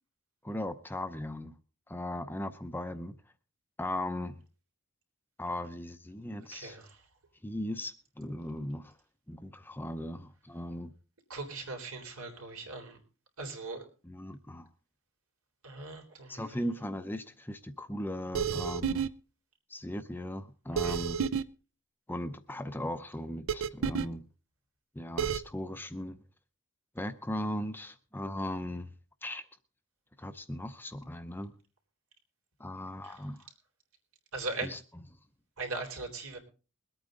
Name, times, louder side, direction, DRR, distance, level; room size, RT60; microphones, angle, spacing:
voice 1, 0.4-1.5 1.9-3.2 3.8-4.4 5.4-6.8 7.4-8.9 9.3-10.9 14.0-14.7 16.3-19.0 19.7-21.2 22.1-24.2 25.0-26.2 26.9-28.9 29.2-29.4 30.2-31.5 32.6-33.4 34.6-34.8, left 1 dB, 10° left, 0.6 m, -38 dB
voice 2, 6.5-7.0 11.3-13.0 13.4-13.9 15.6-16.6 20.8-21.0 33.0-33.2 34.3-34.7 35.6-36.4, right 3 dB, 85° right, 3.6 m, -39 dB
sound 1, 18.3-19.1 20.8-21.4 23.5-24.1 25.2-25.4, right 7 dB, 65° right, 0.5 m, -30 dB
22.0 x 8.8 x 3.8 m
head